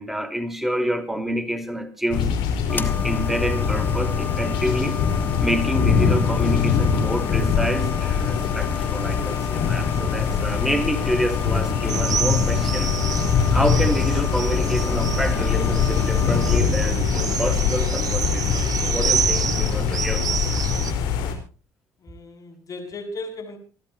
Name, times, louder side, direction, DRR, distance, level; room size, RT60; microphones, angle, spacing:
voice 1, 0.0-2.3 2.7-5.1 5.4-12.9 13.5-20.6, equal, 5° right, 9 dB, 4.6 m, -28 dB
sound 1, 2.1-21.3, left 7 dB, 75° left, 4.7 m, -23 dB
sound 2, 2.7-16.6, left 5 dB, 20° left, 1.8 m, -34 dB
sound 3, 11.9-20.9, right 8 dB, 45° right, 1.6 m, -29 dB
voice 2, 22.0-23.6, left 2 dB, 45° left, 5 dB, 7.3 m, -36 dB
28.5 x 12.0 x 3.0 m, 0.36 s
supercardioid pair, 75°, 8 cm